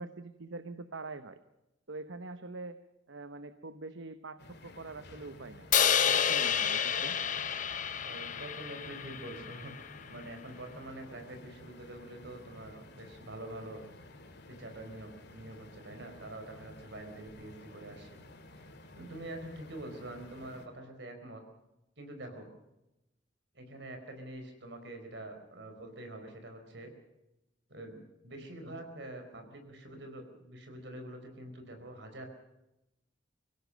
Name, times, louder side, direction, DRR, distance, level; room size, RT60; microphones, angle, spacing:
voice 1, 0.0-1.4 1.9-2.8 3.1-5.7 6.0-7.2, right 3 dB, 80° right, 11 dB, 0.9 m, -44 dB
sound 1, 4.4-20.7, left 1 dB, 60° left, 2.5 m, -53 dB
Crash cymbal, 5.7-9.9, left 8 dB, 45° left, 1.0 m, -30 dB
voice 2, 8.0-13.8 14.5-18.2 19.0-21.4 22.0-22.5 23.5-26.9 27.7-28.0 28.2-32.3, right 1 dB, 65° right, 6 dB, 4.6 m, -45 dB
24.5 x 17.0 x 6.6 m, 0.91 s
head